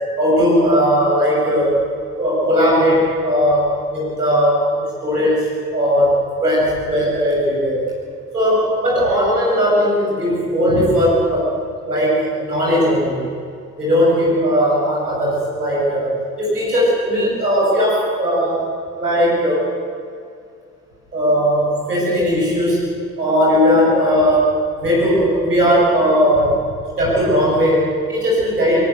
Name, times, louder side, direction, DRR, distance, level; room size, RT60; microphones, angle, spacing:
voice 1, 0.2-1.7 2.2-7.8 8.3-11.5 11.8-13.2 13.8-18.6 19.0-19.6 21.1-22.9 23.2-26.6 27.0-28.8, equal, 85° right, -5 dB, 7.8 m, -17 dB
23.5 x 22.5 x 8.0 m, 2.4 s
figure-of-eight pair, 50°, 45 cm